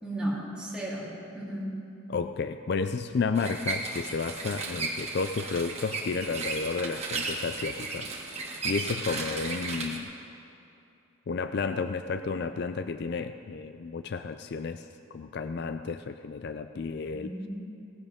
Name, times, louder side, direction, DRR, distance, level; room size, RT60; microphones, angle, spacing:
voice 1, 0.0-1.7 17.1-17.5, right 1 dB, 5° right, -8 dB, 3.3 m, -34 dB
voice 2, 2.1-8.1 8.6-10.1 11.3-17.4, left 4 dB, 55° left, 9 dB, 0.4 m, -32 dB
sound 1, 3.3-10.0, right 3 dB, 30° right, 1.5 m, -35 dB
18.0 x 15.0 x 3.6 m, 2.7 s
head